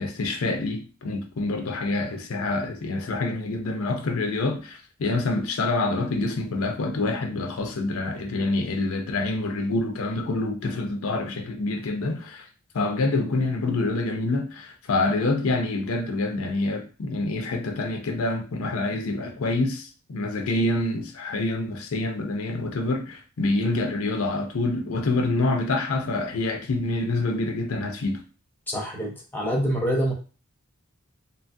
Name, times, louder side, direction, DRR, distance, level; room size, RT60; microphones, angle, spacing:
voice 1, 0.0-12.5 12.7-28.2, left 2 dB, 90° left, 0.5 m, -26 dB
voice 2, 28.7-30.1, equal, 10° left, 0.5 m, -26 dB
2.9 x 2.3 x 2.5 m
head